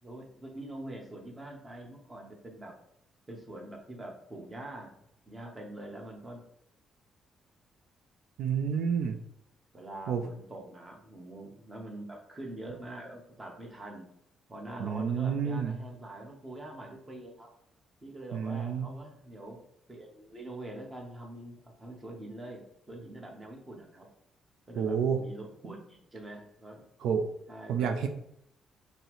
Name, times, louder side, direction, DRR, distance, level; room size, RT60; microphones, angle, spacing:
voice 1, 0.0-2.7 3.3-5.0 5.3-6.4 9.7-14.1 14.5-17.5 18.0-19.6 19.9-24.1 24.7-26.8 27.5-27.9, right 1 dB, 25° right, 0 dB, 1.1 m, -44 dB
voice 2, 8.4-9.2 10.1-10.2 14.8-15.7 18.3-18.9 24.8-25.2 27.0-27.2 27.7-28.1, right 7 dB, 80° right, 5 dB, 0.4 m, -29 dB
5.4 x 2.1 x 3.0 m, 0.74 s
cardioid pair, 90°, 0 cm